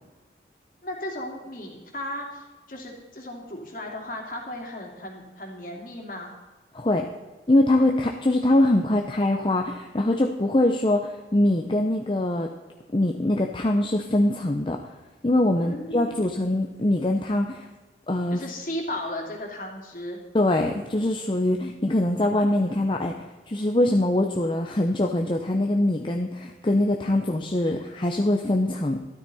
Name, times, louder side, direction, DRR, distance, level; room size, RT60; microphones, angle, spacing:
voice 1, 0.8-6.4 15.6-16.4 18.3-20.2, left 1 dB, 50° left, 0 dB, 2.7 m, -35 dB
voice 2, 6.7-7.1 7.5-12.5 12.9-14.8 15.2-17.7 18.1-18.4 20.3-23.1 23.5-29.0, left 1 dB, 30° left, 2 dB, 0.7 m, -23 dB
13.0 x 12.5 x 4.2 m, 1.2 s
head